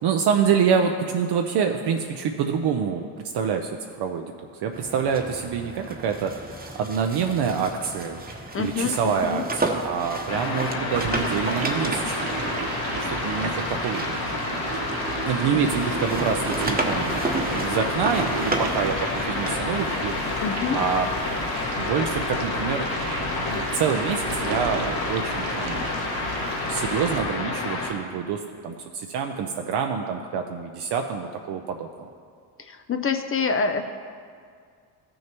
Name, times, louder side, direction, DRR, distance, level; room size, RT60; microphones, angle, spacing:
voice 1, 0.0-3.1 3.3-8.2 8.6-12.4 12.9-14.6 15.3-20.1 20.7-21.1 21.8-22.9 23.4-26.0 26.7-32.1, right 6 dB, 55° right, 4 dB, 0.7 m, -26 dB
sound 1, 4.7-15.3 15.6-20.0, right 2 dB, 20° right, 1.0 m, -32 dB
voice 2, 8.5-9.4 15.1-15.6 20.4-20.8 32.6-33.8, left 5 dB, 30° left, 7 dB, 0.5 m, -27 dB
sound 2, 10.3-27.9, left 3 dB, 50° left, 1.9 m, -29 dB
sound 3, 10.9-27.2, right 5 dB, 85° right, 0.9 m, -34 dB
14.0 x 6.4 x 3.0 m, 2.1 s
supercardioid pair, 85°, 47 cm